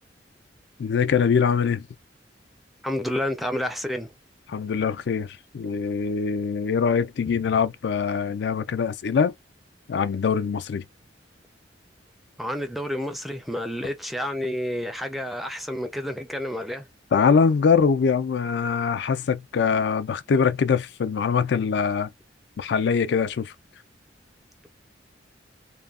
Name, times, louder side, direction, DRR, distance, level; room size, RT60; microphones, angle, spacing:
voice 1, 0.8-1.8 4.5-5.3 5.5-9.3 9.9-10.8 17.1-22.1 22.6-23.5, left 6 dB, 65° left, 0.4 m, -23 dB
voice 2, 2.8-4.1 12.4-16.9, left 1 dB, ahead, 0.4 m, -29 dB
2.8 x 2.1 x 2.4 m
head